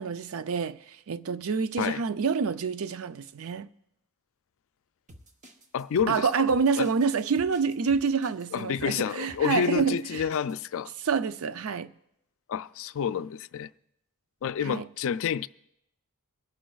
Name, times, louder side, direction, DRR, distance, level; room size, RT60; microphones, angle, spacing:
voice 1, 0.0-3.7 6.1-10.3 11.0-11.9 14.6-14.9, right 5 dB, 65° right, 0.5 m, -27 dB
sound 1, 5.1-10.5, right 1 dB, 35° right, 1.0 m, -51 dB
voice 2, 5.7-6.3 6.8-6.9 8.5-10.9 12.5-13.7 14.4-15.5, left 7 dB, 65° left, 0.4 m, -29 dB
24.5 x 11.5 x 2.4 m
head